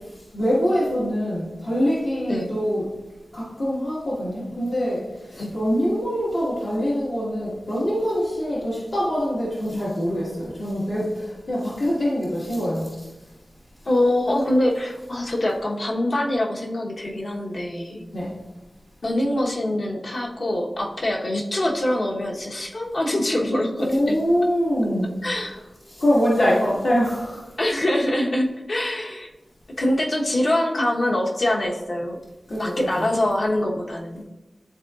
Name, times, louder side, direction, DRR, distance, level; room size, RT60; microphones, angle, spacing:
voice 1, 0.3-2.9 3.3-5.0 5.3-12.9 18.1-18.3 23.8-25.1 25.9-27.4 32.5-33.1, equal, 80° left, -9 dB, 1.7 m, -24 dB
voice 2, 13.8-18.0 19.0-24.2 25.2-25.6 27.6-29.3 29.8-32.2 32.6-34.2, left 1 dB, 65° left, -1 dB, 1.1 m, -24 dB
11.0 x 3.9 x 2.4 m, 1.1 s
wide cardioid pair, 75°, 0 cm